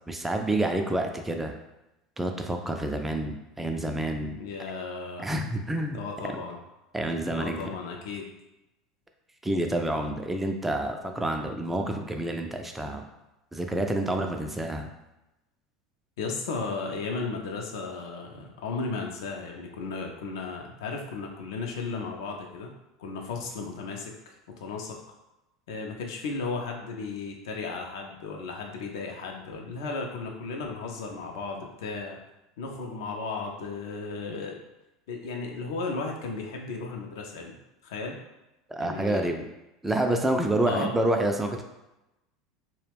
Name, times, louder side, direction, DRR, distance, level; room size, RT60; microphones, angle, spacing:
voice 1, 0.1-1.6 2.2-4.4 5.2-6.0 6.9-7.6 9.4-13.0 13.5-14.9 38.7-39.4 39.8-41.6, right 1 dB, 10° right, 4 dB, 0.3 m, -28 dB
voice 2, 4.4-5.3 5.9-6.6 7.2-8.3 16.2-22.7 23.0-25.0 25.7-32.2 32.6-34.6 35.1-37.6 37.8-38.2 38.8-39.4 40.7-41.0, left 4 dB, 65° left, 1 dB, 0.4 m, -35 dB
2.3 x 2.1 x 3.3 m, 0.96 s
figure-of-eight pair, 75°, 2 cm